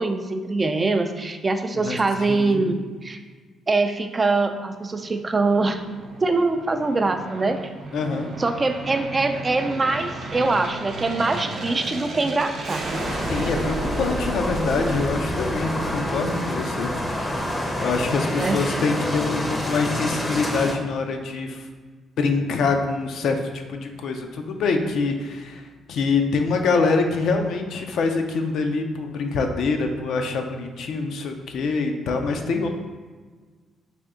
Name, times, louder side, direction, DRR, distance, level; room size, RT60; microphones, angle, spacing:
voice 1, 0.0-3.2 3.7-5.8 6.2-7.6 8.4-13.0 18.4-18.6, right 3 dB, 30° right, 7 dB, 0.3 m, -23 dB
voice 2, 2.3-2.7 7.9-8.3 13.3-16.9 17.8-21.7 22.2-32.7, left 4 dB, 75° left, 4 dB, 0.4 m, -25 dB
Aircraft, 4.9-17.6, right 2 dB, 60° right, 0.7 m, -33 dB
sound 1, 12.9-20.8, left 1 dB, 20° left, 0.6 m, -28 dB
3.4 x 2.7 x 3.7 m, 1.4 s
cardioid pair, 90°, 0 cm